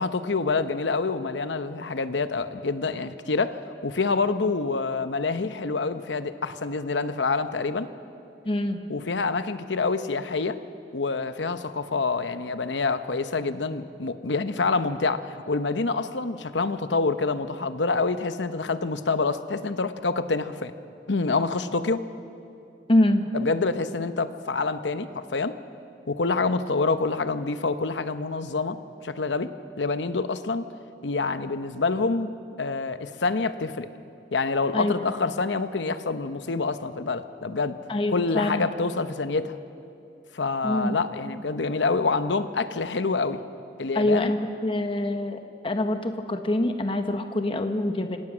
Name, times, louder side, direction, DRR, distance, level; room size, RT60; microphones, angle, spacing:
voice 1, 0.0-7.9 8.9-10.6 10.9-20.7 21.1-22.0 23.3-25.6 26.1-28.8 29.0-29.5 29.8-30.6 31.0-32.3 32.6-33.9 34.3-37.8 38.1-39.6 40.3-43.4 43.8-44.3, left 3 dB, 85° left, 11 dB, 0.9 m, -27 dB
voice 2, 8.4-8.8 22.9-23.2 34.7-35.1 37.9-38.7 40.6-41.0 43.9-48.2, left 1 dB, 30° left, 7 dB, 1.0 m, -25 dB
27.0 x 17.0 x 6.2 m, 2.7 s
head